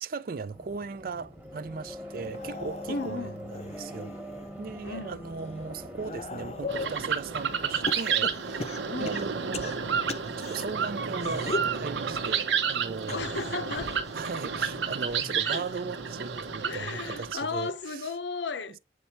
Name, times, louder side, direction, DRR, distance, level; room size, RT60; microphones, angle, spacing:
voice 1, 0.0-4.2 4.6-9.8 10.4-13.3 14.1-18.1, right 4 dB, 50° right, 0.4 m, -38 dB
sound 1, 0.5-7.9, equal, 5° right, 1.1 m, -43 dB
sound 2, 2.2-4.5 5.0-7.0 7.9-10.7 11.2-11.8 13.0-15.9 16.2-16.6 17.8-17.9, left 3 dB, 35° left, 0.4 m, -39 dB
voice 2, 2.9-3.4 4.8-5.2 8.9-9.2 13.1-14.0 15.3-15.6 16.6-18.8, left 4 dB, 75° left, 0.7 m, -35 dB
sound 3, 6.7-17.3, right 6 dB, 80° right, 0.9 m, -31 dB
8.3 x 3.2 x 4.3 m
head